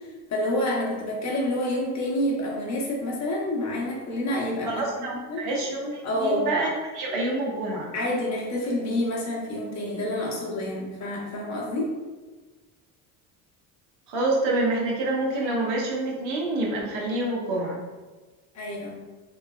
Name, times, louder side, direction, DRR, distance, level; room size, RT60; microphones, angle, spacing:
voice 1, 0.3-5.4 6.0-6.5 7.9-11.9 18.5-19.0, left 1 dB, 40° left, -3 dB, 0.9 m, -28 dB
voice 2, 4.7-7.9 14.1-17.8, right 2 dB, 60° right, -3 dB, 0.9 m, -27 dB
3.2 x 2.1 x 2.2 m, 1.3 s
supercardioid pair, 85°, 43 cm